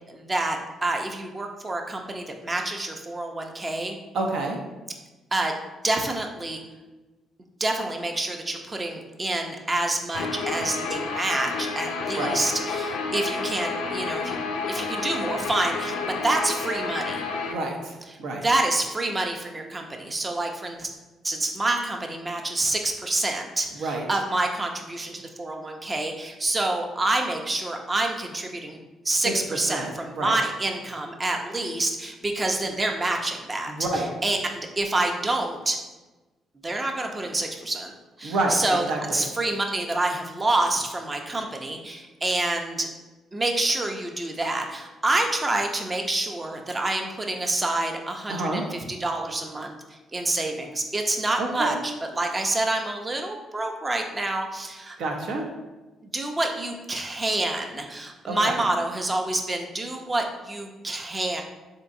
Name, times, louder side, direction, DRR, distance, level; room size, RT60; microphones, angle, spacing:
voice 1, 0.0-4.0 5.3-5.5 5.8-6.6 7.6-14.4 14.7-17.2 18.4-20.9 21.2-28.8 29.0-35.8 36.6-37.9 38.2-38.8 39.1-42.9 43.3-49.7 50.1-55.0 56.1-61.4, right 2 dB, 30° right, 3 dB, 0.5 m, -27 dB
voice 2, 4.1-4.6 12.2-12.4 17.5-18.4 23.7-24.0 29.2-29.3 29.7-30.4 33.7-34.1 38.2-39.2 48.3-48.6 51.4-51.8 55.0-55.4 58.3-58.5, right 2 dB, 75° right, 1 dB, 0.6 m, -28 dB
Guitar, 10.1-17.5, left 4 dB, 85° left, 0.3 m, -30 dB
3.7 x 2.7 x 2.5 m, 1.2 s
supercardioid pair, 60°, 0 cm